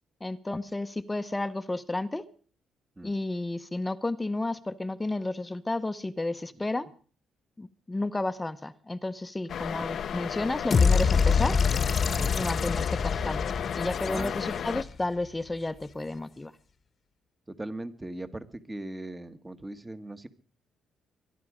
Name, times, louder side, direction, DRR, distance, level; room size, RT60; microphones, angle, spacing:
voice 1, 0.2-2.2 3.0-6.9 7.6-11.6 12.3-13.4 13.8-16.5, left 2 dB, 15° left, 12 dB, 0.9 m, -32 dB
sound 1, 9.5-14.8, left 8 dB, 60° left, 0.7 m, -33 dB
sound 2, 10.7-14.8, left 5 dB, 40° left, 1.2 m, -25 dB
voice 2, 17.5-20.3, right 1 dB, 15° right, 10 dB, 1.5 m, -39 dB
23.5 x 11.0 x 5.0 m, 0.43 s
cardioid pair, 90°, 0 cm